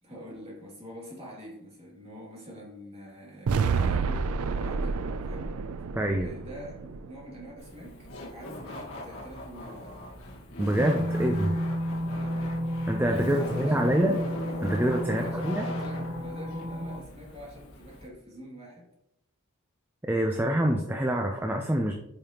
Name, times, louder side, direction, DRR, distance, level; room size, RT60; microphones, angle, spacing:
voice 1, 0.0-5.5 6.2-9.8 11.2-11.4 12.0-12.5 13.2-14.2 15.0-18.9, equal, 25° right, -4 dB, 2.4 m, -45 dB
sound 1, 3.5-7.6, right 5 dB, 85° right, 0.4 m, -29 dB
voice 2, 5.9-6.3 10.6-11.5 12.9-14.2 14.6-15.7 20.0-21.9, right 1 dB, 10° right, 2 dB, 0.5 m, -26 dB
Laughter, 7.6-18.1, left 1 dB, 70° left, 1.7 m, -41 dB
sound 2, 10.8-17.0, equal, 55° right, 2.7 m, -32 dB
8.8 x 5.3 x 2.9 m, 0.81 s
head